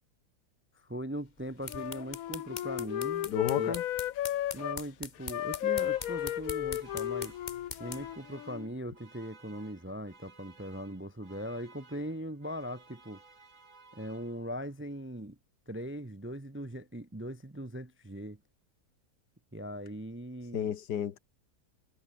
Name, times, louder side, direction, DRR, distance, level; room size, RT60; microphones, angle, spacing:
voice 1, 0.7-3.3 3.6-3.8 4.5-7.3 7.8-13.2 13.9-15.4 15.7-18.4 19.5-20.7, equal, 15° right, 0.5 m, -40 dB
sound 1, 1.4-8.2, left 5 dB, 30° left, 1.1 m, -44 dB
Wind instrument woodwind instrument, 1.7-4.8 5.2-8.7, left 12 dB, 65° left, 1.0 m, -34 dB
voice 2, 3.3-3.8 20.5-21.2, left 9 dB, 85° left, 1.8 m, -32 dB
sound 2, 5.7-14.7, right 4 dB, 50° right, 3.2 m, -58 dB
omnidirectional pair, 1.7 m